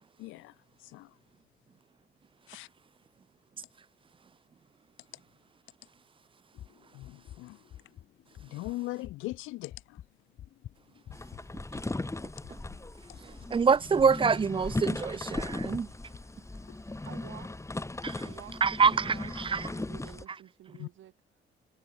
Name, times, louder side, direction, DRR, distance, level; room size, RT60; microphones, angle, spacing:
voice 1, 0.2-0.5 0.9-1.1 2.5-2.7 6.9-7.6 8.5-9.7 20.8-20.9, left 19 dB, 90° left, 0.4 m, -39 dB
sound 1, 6.5-15.5 15.9-16.2 16.6-16.9, left 11 dB, 70° left, 4.4 m, -51 dB
sound 2, 11.1-20.3, left 2 dB, 15° left, 3.8 m, -37 dB
voice 2, 13.5-15.9 18.0-18.1 18.6-18.9 19.5-19.6, right 5 dB, 25° right, 0.4 m, -25 dB
voice 3, 17.1-17.7 18.2-21.4, right 13 dB, 75° right, 3.0 m, -50 dB
cardioid pair, 90°, 20 cm